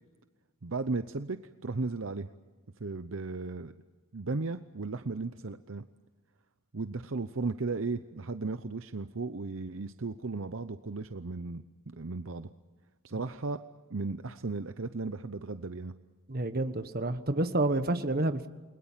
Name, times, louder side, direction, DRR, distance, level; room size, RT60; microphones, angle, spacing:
voice 1, 0.6-1.4 1.6-2.3 2.8-3.7 4.1-5.8 6.7-11.6 12.0-12.5 13.0-13.6 13.9-15.9, right 3 dB, 60° right, 10 dB, 0.8 m, -35 dB
voice 2, 16.3-18.5, right 2 dB, 45° right, 10 dB, 1.3 m, -29 dB
29.0 x 21.5 x 7.5 m, 1.3 s
head